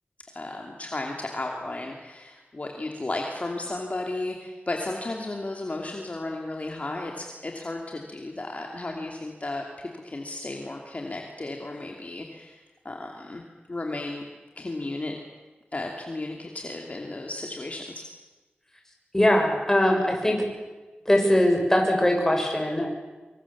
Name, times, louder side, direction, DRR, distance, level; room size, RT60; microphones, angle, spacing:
voice 1, 0.3-12.6 12.8-13.4 13.7-14.2 14.6-15.2 15.7-18.0, left 2 dB, 40° left, 1 dB, 2.7 m, -34 dB
voice 2, 19.1-20.4 21.1-22.9, left 1 dB, 15° left, 1 dB, 6.4 m, -21 dB
25.0 x 24.5 x 7.3 m, 1.2 s
wide cardioid pair, 95°, 4 cm